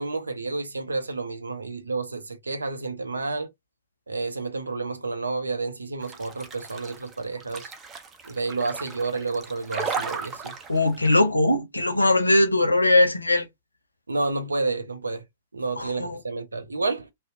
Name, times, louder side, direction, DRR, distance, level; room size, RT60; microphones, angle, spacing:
voice 1, 0.0-3.5 4.1-7.7 8.2-10.5 14.1-15.2 15.5-17.1, right 3 dB, 80° right, 0.5 m, -30 dB
sound 1, 6.0-11.2, right 5 dB, 20° right, 0.5 m, -35 dB
voice 2, 10.7-13.5 15.8-16.2, left 2 dB, 90° left, 0.5 m, -20 dB
2.7 x 2.0 x 2.5 m
figure-of-eight pair, 110°, 0 cm